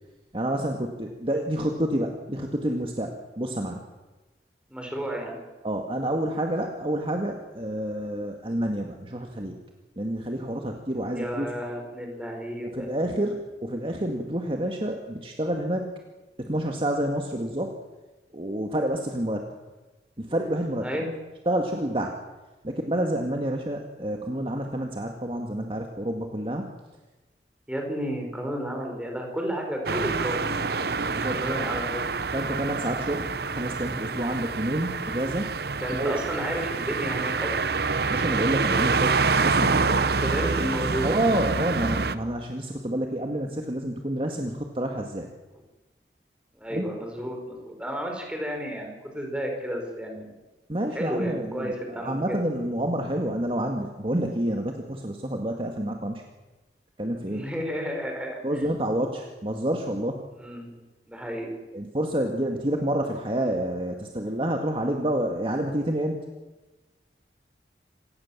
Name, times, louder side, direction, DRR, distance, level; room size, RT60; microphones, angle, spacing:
voice 1, 0.3-3.8 5.6-9.5 10.0-11.5 12.6-13.3 13.6-15.9 16.4-17.7 18.3-19.5 20.2-20.9 21.5-22.2 22.6-26.7 31.1-31.4 32.3-35.5 36.0-36.1 38.1-39.2 39.4-39.9 41.0-45.3 46.7-46.9 50.7-56.2 57.0-57.4 58.4-60.2 61.7-66.2, right 1 dB, 30° right, 3 dB, 1.9 m, -28 dB
voice 2, 4.7-5.4 11.1-12.9 20.8-21.1 27.7-32.0 35.8-37.5 40.2-41.1 46.6-50.3 50.9-52.4 57.2-58.6 60.3-60.7 61.1-61.5, equal, 5° right, 2 dB, 5.2 m, -32 dB
sound 1, 29.9-42.2, right 4 dB, 60° right, 0.9 m, -26 dB
26.5 x 18.0 x 7.4 m, 1.1 s
head